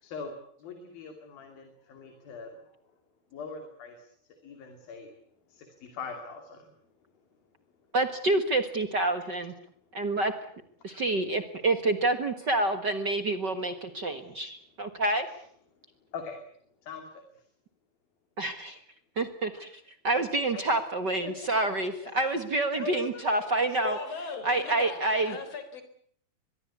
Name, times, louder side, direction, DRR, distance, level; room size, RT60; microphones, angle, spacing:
voice 1, 0.0-2.8 3.3-4.1 4.4-5.1 5.5-6.7 9.2-9.4 10.8-11.0 15.3-15.4 16.1-16.4 16.8-17.5 20.5-20.9 21.2-21.5 22.7-23.5 24.6-24.9 25.2-25.4, left 4 dB, 70° left, 5 dB, 4.5 m, -42 dB
voice 2, 7.9-9.5 9.9-10.3 10.8-15.3 18.4-18.8 19.2-24.0 24.4-25.4, right 2 dB, 50° right, 9 dB, 1.3 m, -28 dB
voice 3, 23.8-25.0 25.3-25.8, left 4 dB, 40° left, 9 dB, 4.8 m, -37 dB
24.5 x 21.5 x 8.5 m, 0.63 s
omnidirectional pair, 4.3 m